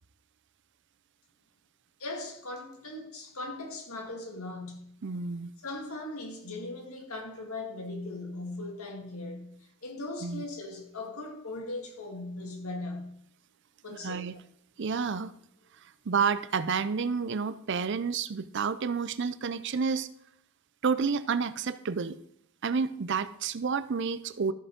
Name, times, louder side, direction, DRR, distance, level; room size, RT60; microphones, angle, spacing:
voice 1, 2.0-5.0 5.6-9.6 9.8-13.1 13.8-14.4, left 2 dB, 85° left, 2.1 m, -39 dB
voice 2, 5.0-5.5 10.2-10.4 13.9-14.3 14.8-15.3 16.1-20.1 20.8-22.2 22.6-24.5, right 5 dB, 55° right, 0.5 m, -30 dB
13.0 x 6.0 x 5.2 m
head